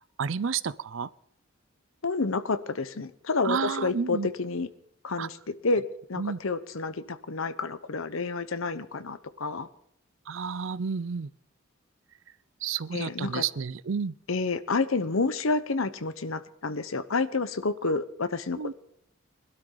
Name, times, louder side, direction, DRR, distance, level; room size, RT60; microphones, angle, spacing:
voice 1, 0.2-1.1 3.4-4.3 5.2-5.3 6.2-6.4 10.3-11.3 12.6-14.1 18.6-18.7, right 6 dB, 70° right, 19 dB, 0.5 m, -31 dB
voice 2, 2.0-4.7 5.0-5.4 5.6-5.8 6.1-9.7 12.9-13.4 14.3-18.7, left 3 dB, 80° left, 13 dB, 0.9 m, -29 dB
20.5 x 12.5 x 3.9 m, 0.72 s
head